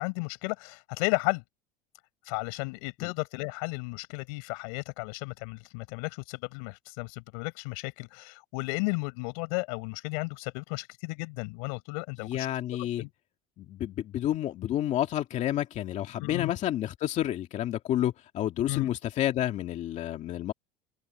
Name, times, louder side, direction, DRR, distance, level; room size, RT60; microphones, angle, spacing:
voice 1, 0.0-1.4 2.2-12.5 13.0-13.1 16.2-16.5 18.7-18.9, left 32 dB, 80° left, 5.9 m, -34 dB
voice 2, 12.2-13.0 13.6-20.5, left 12 dB, 40° left, 2.3 m, -30 dB
cardioid pair, 145°, 18 cm